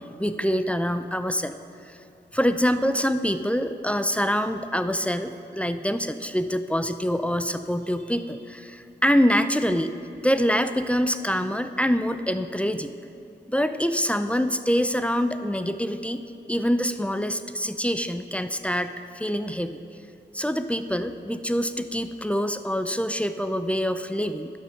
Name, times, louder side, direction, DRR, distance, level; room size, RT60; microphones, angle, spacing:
voice 1, 0.0-1.5 1.9-2.0 2.3-9.9 10.2-12.9 13.5-16.2 16.5-19.8 20.3-24.5, equal, 5° left, 10 dB, 0.4 m, -25 dB
11.5 x 6.7 x 5.9 m, 2.6 s
cardioid pair, 60°, 19 cm